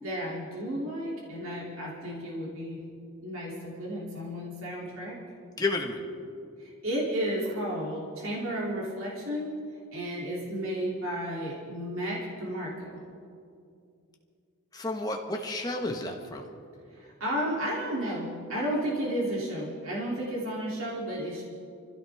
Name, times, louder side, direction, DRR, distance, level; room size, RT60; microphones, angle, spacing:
voice 1, 0.0-2.8 3.2-5.2 6.6-9.5 9.9-13.0 16.9-21.4, equal, 70° right, -5 dB, 3.0 m, -33 dB
voice 2, 5.6-6.0 14.7-16.4, left 2 dB, 15° left, 1 dB, 1.4 m, -31 dB
25.0 x 16.0 x 3.6 m, 2.4 s
head